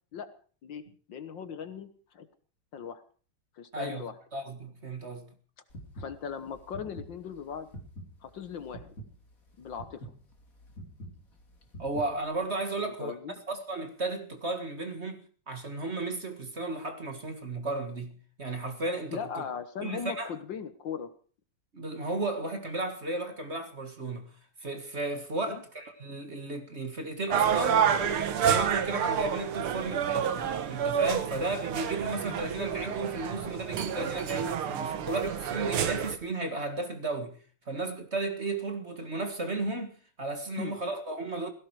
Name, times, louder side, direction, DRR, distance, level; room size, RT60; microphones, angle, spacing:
voice 1, 1.1-1.9 2.1-2.3 2.7-3.0 3.6-4.1 6.0-7.7 8.2-9.0 9.6-10.1 12.8-13.3 19.1-21.1 25.4-25.6 40.6-40.8, left 7 dB, 60° left, 1.8 m, -38 dB
voice 2, 3.7-5.3 11.8-13.2 13.5-19.2 19.8-20.3 21.7-24.3 24.6-27.9 28.4-37.4 37.7-41.5, right 2 dB, 30° right, 1.9 m, -34 dB
sound 1, 5.7-12.4, right 1 dB, 40° left, 3.4 m, -46 dB
sound 2, 27.3-36.2, right 8 dB, 75° right, 2.1 m, -29 dB
17.0 x 16.0 x 4.8 m
omnidirectional pair, 2.4 m